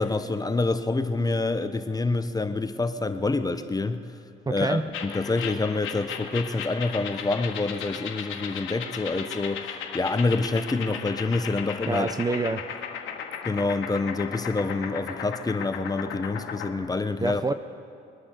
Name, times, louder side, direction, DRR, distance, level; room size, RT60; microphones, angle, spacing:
voice 1, 0.0-4.0 4.5-12.1 13.4-17.4, left 3 dB, 20° left, 10 dB, 0.8 m, -27 dB
voice 2, 4.5-4.8 11.9-12.6 17.2-17.5, right 3 dB, 20° right, 10 dB, 0.5 m, -26 dB
sound 1, 4.9-16.7, left 7 dB, 85° left, 1.5 m, -36 dB
22.5 x 9.7 x 6.7 m, 2.5 s
cardioid pair, 90°, 20 cm